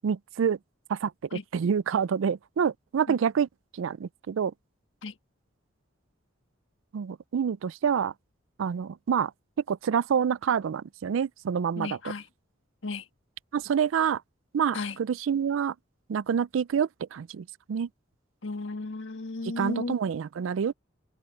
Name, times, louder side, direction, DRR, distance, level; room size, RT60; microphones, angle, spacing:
voice 1, 0.0-0.6 0.9-3.5 3.7-4.5 6.9-8.1 8.6-9.3 9.7-12.0 13.5-14.2 14.5-15.7 16.1-17.9 19.6-20.7, right 7 dB, 75° right, 0.4 m, -27 dB
voice 2, 11.8-12.3 12.8-13.0 14.7-15.0 18.4-20.0, left 3 dB, 65° left, 1.6 m, -34 dB
head